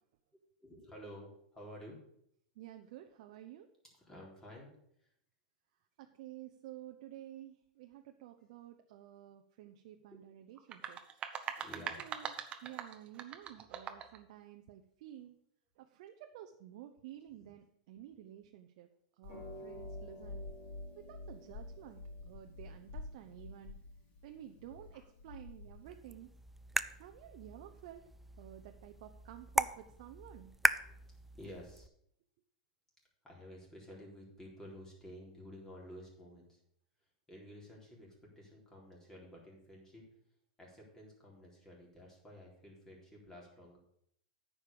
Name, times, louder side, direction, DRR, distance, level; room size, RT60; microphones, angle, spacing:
voice 1, 0.6-2.0 3.9-4.7 5.0-5.1 11.6-12.1 17.4-17.5 30.8-31.0 31.4-31.9 33.2-36.6 37.3-40.0 40.6-43.8, equal, 10° left, -2 dB, 3.8 m, -52 dB
voice 2, 2.6-3.7 6.0-11.2 12.0-12.3 12.6-15.4 15.8-18.9 19.2-20.5 21.0-23.8 24.2-26.3 26.9-28.1 28.4-30.5, right 12 dB, 60° right, 5 dB, 0.8 m, -52 dB
sound 1, 10.6-14.2, right 8 dB, 30° right, 0.9 m, -42 dB
Harp, 19.2-26.0, left 2 dB, 40° left, 5.0 m, -48 dB
sound 2, 25.9-31.9, right 2 dB, 5° right, 0.3 m, -38 dB
9.4 x 5.4 x 6.9 m, 0.71 s
hypercardioid pair, 125°, 4 cm